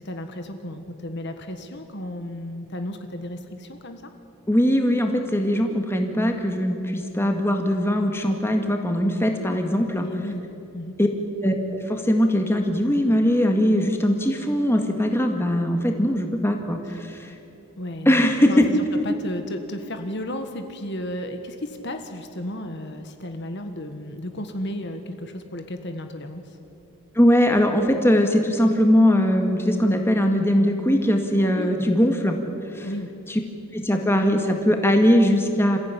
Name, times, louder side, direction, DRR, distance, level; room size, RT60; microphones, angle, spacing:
voice 1, 0.0-4.0 10.0-10.4 10.7-10.9 17.8-26.4 31.4-31.9 32.8-33.1, left 1 dB, 50° left, 6 dB, 1.7 m, -33 dB
voice 2, 4.5-10.0 11.0-11.1 11.4-17.3 18.1-18.7 27.2-32.3 32.7-32.9 33.3-33.4 33.7-35.8, equal, 10° left, 4 dB, 1.9 m, -20 dB
27.5 x 15.5 x 9.9 m, 2.8 s
head